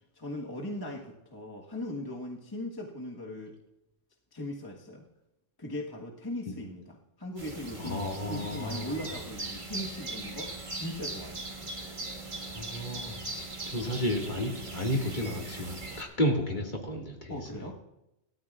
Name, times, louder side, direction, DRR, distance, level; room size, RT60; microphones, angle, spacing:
voice 1, 0.1-3.5 4.3-5.1 5.6-11.4 17.3-17.7, left 1 dB, 20° left, -2 dB, 1.4 m, -39 dB
sound 1, 7.4-16.0, right 2 dB, 40° right, 2.0 m, -40 dB
voice 2, 7.8-9.1 12.5-13.2 13.7-17.4, left 1 dB, 40° left, 0 dB, 2.2 m, -32 dB
27.0 x 13.0 x 2.4 m, 0.91 s
omnidirectional pair, 1.3 m